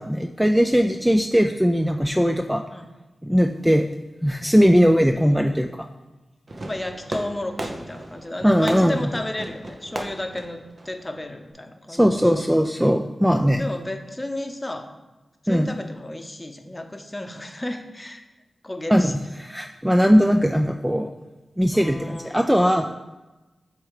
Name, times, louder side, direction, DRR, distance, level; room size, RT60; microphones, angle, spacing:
voice 1, 0.0-2.6 3.2-3.9 4.2-5.7 8.4-9.0 11.9-13.6 15.5-15.7 18.9-19.0 19.4-21.1 21.6-22.9, equal, 5° right, 4 dB, 0.4 m, -19 dB
Fireworks, 6.5-11.5, right 1 dB, 50° right, 0.8 m, -36 dB
voice 2, 6.7-12.6 13.5-14.9 15.4-18.2 18.6-19.2 21.7-22.4, left 1 dB, 20° left, 5 dB, 0.8 m, -33 dB
7.8 x 3.5 x 4.8 m, 1.1 s
cardioid pair, 65°, 0 cm